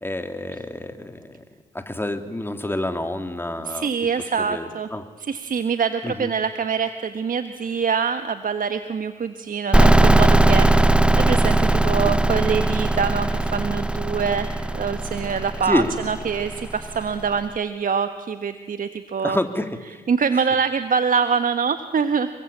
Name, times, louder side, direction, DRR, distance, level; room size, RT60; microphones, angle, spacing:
voice 1, 0.0-1.4 1.7-3.9 4.4-5.0 6.0-6.3 11.9-12.1 15.6-15.9 19.2-20.0, left 1 dB, 10° left, 6 dB, 3.4 m, -28 dB
voice 2, 3.6-4.9 5.2-19.4 20.1-22.3, right 6 dB, 50° right, 9 dB, 1.5 m, -25 dB
sound 1, 9.7-17.3, right 1 dB, 5° right, 1.1 m, -19 dB
28.0 x 23.0 x 8.7 m, 1.3 s
hypercardioid pair, 45°, 18 cm